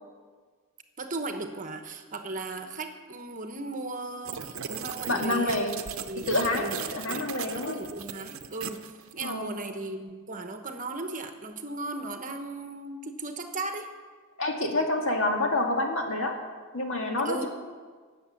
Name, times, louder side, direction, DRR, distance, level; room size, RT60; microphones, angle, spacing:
voice 1, 1.0-5.6 6.0-8.8 9.1-13.9 17.2-17.5, right 2 dB, 35° right, 6 dB, 1.0 m, -36 dB
sound 1, 4.2-9.2, right 8 dB, 60° right, 0.8 m, -38 dB
voice 2, 5.1-5.8 6.3-7.8 9.2-9.5 14.4-16.4 16.7-17.5, left 2 dB, 60° left, 2 dB, 2.1 m, -28 dB
18.5 x 7.3 x 7.2 m, 1.5 s
head